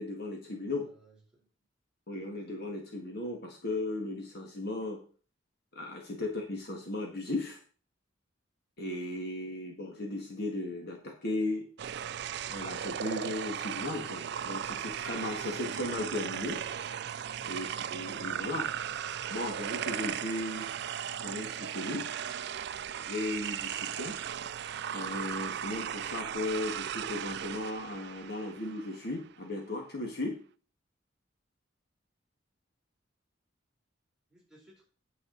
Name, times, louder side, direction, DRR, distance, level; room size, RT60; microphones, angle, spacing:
voice 1, 0.0-0.9 2.1-5.0 5.8-7.6 8.8-11.7 12.5-16.6 17.4-18.7 19.3-20.7 21.2-22.1 23.0-24.2 24.9-30.4, left 2 dB, 55° left, 2 dB, 1.9 m, -36 dB
voice 2, 0.8-1.5 6.2-6.3 34.3-34.8, right 1 dB, 5° right, -5 dB, 3.8 m, -61 dB
sound 1, 11.8-29.1, right 9 dB, 60° right, 0.4 m, -37 dB
9.4 x 7.0 x 4.0 m, 0.39 s
head